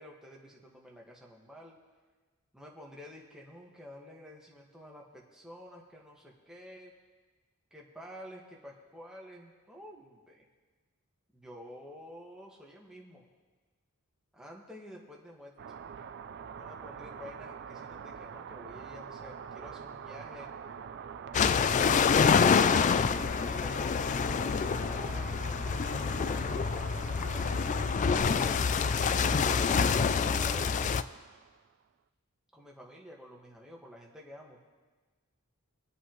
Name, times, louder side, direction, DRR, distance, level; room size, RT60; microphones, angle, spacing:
voice 1, 0.0-1.8 2.5-6.9 7.7-10.5 11.3-13.3 14.3-15.5 16.6-20.5 23.4-28.4 32.5-34.6, equal, 5° right, -3 dB, 1.6 m, -50 dB
sound 1, 15.6-31.7, right 7 dB, 50° right, 0.4 m, -44 dB
sound 2, 21.3-31.0, left 6 dB, 35° left, 0.3 m, -27 dB
24.5 x 8.3 x 3.1 m, 1.4 s
head